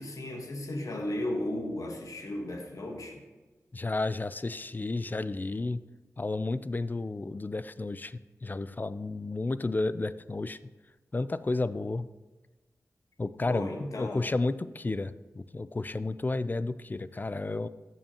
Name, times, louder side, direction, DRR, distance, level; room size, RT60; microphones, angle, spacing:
voice 1, 0.0-3.2 13.5-14.3, left 1 dB, 70° left, 2 dB, 1.2 m, -35 dB
voice 2, 3.7-5.8 6.2-10.6 11.1-12.1 13.2-17.7, left 2 dB, 30° left, 14 dB, 0.3 m, -32 dB
14.0 x 5.5 x 2.9 m, 1.2 s
cardioid pair, 55°, 6 cm